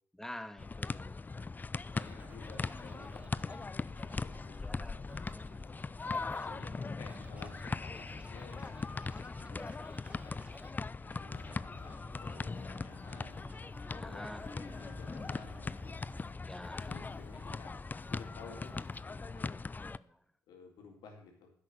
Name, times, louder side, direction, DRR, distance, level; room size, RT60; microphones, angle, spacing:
voice 1, 0.1-1.2 4.5-5.6 9.4-9.9 14.0-14.9 16.3-17.0 19.8-20.2, left 1 dB, 5° left, 8 dB, 1.9 m, -49 dB
sound 1, 0.6-20.0, left 4 dB, 25° left, 0.5 m, -40 dB
voice 2, 1.9-5.8 6.4-9.6 10.1-10.4 11.0-13.5 13.9-16.0 16.8-17.7 18.1-18.8 19.2-19.6 20.5-21.5, left 4 dB, 70° left, 2 dB, 3.8 m, -54 dB
Scratching (performance technique), 1.9-10.7 11.1-16.3 16.6-19.0, right 2 dB, 15° right, 2.4 m, -57 dB
10.5 x 8.3 x 6.5 m, 0.62 s
hypercardioid pair, 55°, 8 cm